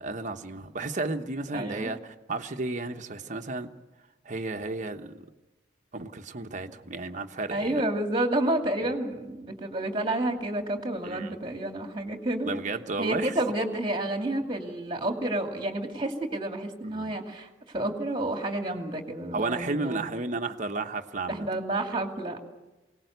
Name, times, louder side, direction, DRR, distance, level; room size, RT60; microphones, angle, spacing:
voice 1, 0.0-3.7 4.2-5.3 5.9-7.8 11.0-11.4 12.4-13.3 16.8-17.1 19.3-21.5 21.9-22.0, right 3 dB, 40° right, 5 dB, 1.1 m, -33 dB
voice 2, 1.5-1.9 7.5-12.5 13.0-20.1 21.3-22.4, right 1 dB, 25° right, 4 dB, 2.5 m, -30 dB
23.0 x 18.5 x 8.1 m, 1.1 s
head